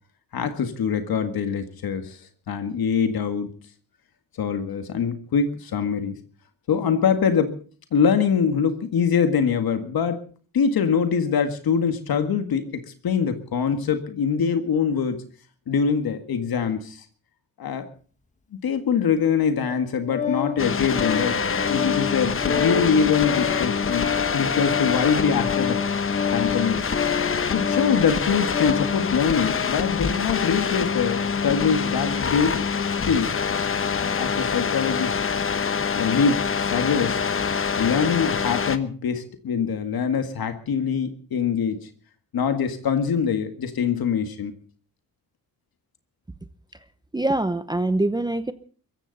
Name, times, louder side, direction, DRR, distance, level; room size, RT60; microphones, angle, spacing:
voice 1, 0.3-2.2 2.5-3.5 4.4-6.2 6.7-7.5 7.9-10.2 10.5-15.2 15.7-17.1 17.6-17.9 18.6-21.4 21.7-25.8 26.3-26.8 27.3-32.7 33.0-33.4 34.0-35.2 36.0-37.3 37.8-41.9 42.3-44.5, left 6 dB, 85° left, 8 dB, 1.9 m, -24 dB
Organ, 19.6-29.0, left 8 dB, 20° left, 1.4 m, -29 dB
sound 1, 20.6-38.8, left 6 dB, 35° left, 1.1 m, -25 dB
voice 2, 47.1-48.5, right 2 dB, 10° right, 11 dB, 0.8 m, -24 dB
23.5 x 15.0 x 4.1 m, 0.41 s
wide cardioid pair, 170°, 35 cm